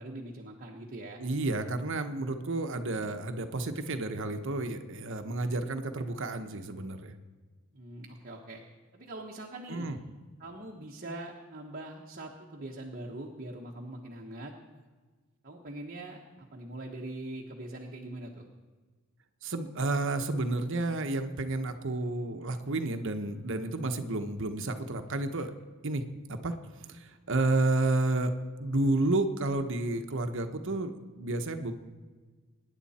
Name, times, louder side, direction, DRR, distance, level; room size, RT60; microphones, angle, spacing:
voice 1, 0.0-1.2 7.7-8.6 8.9-9.9 10.4-14.5 15.4-18.5, right 1 dB, 45° right, -1 dB, 1.3 m, -42 dB
voice 2, 1.2-7.1 9.7-10.0 19.4-25.5 25.8-26.0 26.3-26.5 26.9-28.3 28.6-31.7, right 2 dB, 60° right, 8 dB, 1.1 m, -31 dB
24.5 x 10.0 x 4.3 m, 1.4 s
head